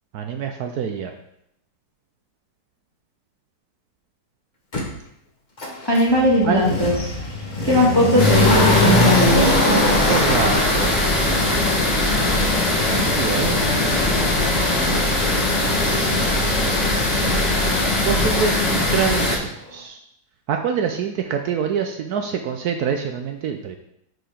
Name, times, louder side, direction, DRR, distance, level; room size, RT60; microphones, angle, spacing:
voice 1, 0.1-1.1 6.4-6.6 10.0-10.9 12.9-13.6 18.0-20.0 20.5-23.8, right 7 dB, 70° right, 4 dB, 1.1 m, -25 dB
Motor vehicle (road), 4.7-4.8 5.6-18.5 18.8-18.9, left 1 dB, 30° left, 1.2 m, -24 dB
voice 2, 5.8-7.1 7.6-10.2, left 1 dB, 15° left, -4 dB, 1.6 m, -19 dB
sound 1, 8.2-19.4, left 2 dB, 45° left, 1.7 m, -21 dB
sound 2, 9.5-16.1, right 1 dB, 5° right, 1.6 m, -34 dB
6.3 x 4.8 x 5.0 m, 0.75 s
omnidirectional pair, 1.8 m